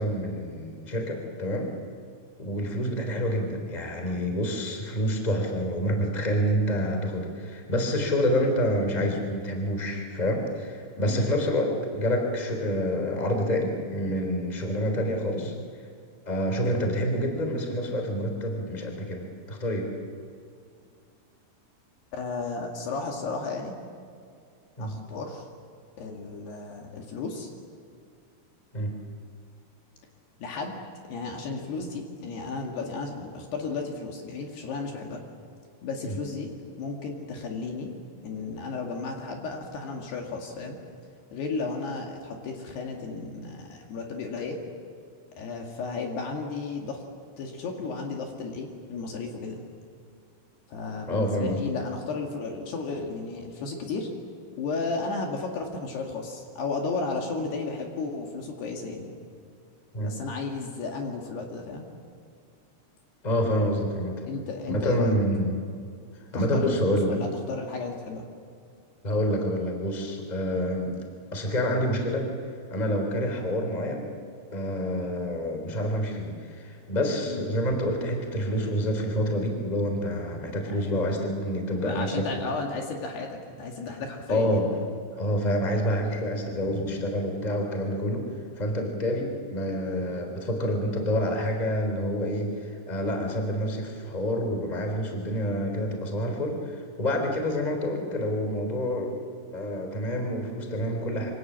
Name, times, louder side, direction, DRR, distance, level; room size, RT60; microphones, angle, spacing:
voice 1, 0.0-1.7 2.4-15.5 16.2-19.9 24.8-24.9 28.7-28.9 36.0-36.2 51.1-51.6 59.9-60.1 63.2-64.3 64.6-65.5 66.3-67.2 69.0-70.9 71.3-72.3 72.7-74.0 74.5-82.5 84.3-84.7 85.2-88.3 88.5-99.1 99.5-101.3, equal, 10° left, 3 dB, 3.0 m, -27 dB
voice 2, 11.0-11.3 15.4-15.5 22.1-23.8 24.8-25.5 26.0-27.5 30.4-30.8 31.1-35.2 35.8-37.9 38.2-40.8 41.3-44.6 45.4-47.0 47.4-49.6 50.7-54.1 54.6-59.1 60.0-61.8 64.3-65.2 66.3-68.3 77.3-77.5 80.6-81.0 81.8-84.6, left 4 dB, 60° left, 1 dB, 3.9 m, -34 dB
27.0 x 25.0 x 7.5 m, 2.3 s
omnidirectional pair, 5.6 m